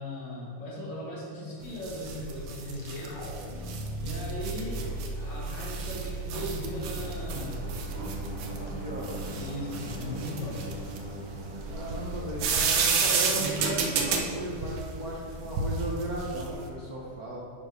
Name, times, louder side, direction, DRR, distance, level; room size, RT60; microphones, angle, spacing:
voice 1, 0.0-3.2 4.0-7.6 9.3-10.7, equal, 55° left, -5 dB, 2.4 m, -38 dB
sound 1, 1.6-16.7, right 5 dB, 70° right, 1.4 m, -32 dB
sound 2, 2.5-9.8, right 2 dB, 75° left, 2.0 m, -38 dB
sound 3, 5.1-13.8, right 1 dB, 10° right, 0.4 m, -43 dB
voice 2, 8.5-9.3 11.7-17.4, right 1 dB, 55° right, -5 dB, 1.2 m, -36 dB
9.2 x 3.9 x 4.8 m, 2.2 s
omnidirectional pair, 2.4 m